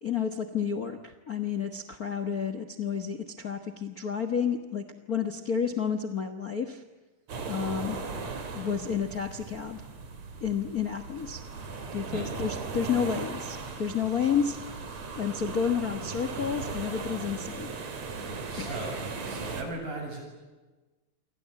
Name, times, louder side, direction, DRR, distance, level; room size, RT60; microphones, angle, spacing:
voice 1, 0.0-6.8 7.5-8.0 8.5-9.8 10.4-11.4 11.9-14.6 15.1-17.7 18.6-18.8, left 7 dB, 55° left, 9 dB, 1.0 m, -30 dB
sound 1, 7.3-19.6, right 4 dB, 55° right, 4.0 m, -38 dB
voice 2, 18.1-20.2, right 1 dB, 90° right, 1 dB, 9.8 m, -38 dB
29.0 x 24.0 x 8.4 m, 1.2 s
omnidirectional pair, 3.7 m